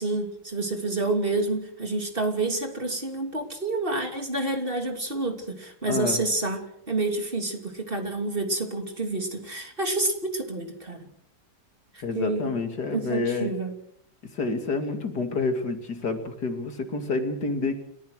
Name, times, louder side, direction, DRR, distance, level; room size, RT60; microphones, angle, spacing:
voice 1, 0.0-6.6 6.9-11.1 12.1-12.5 12.9-13.7, right 2 dB, 35° right, 4 dB, 3.3 m, -28 dB
voice 2, 5.9-6.2 12.0-13.5 14.3-17.8, left 3 dB, 80° left, 6 dB, 3.2 m, -28 dB
30.0 x 15.0 x 6.5 m, 0.70 s
omnidirectional pair, 1.7 m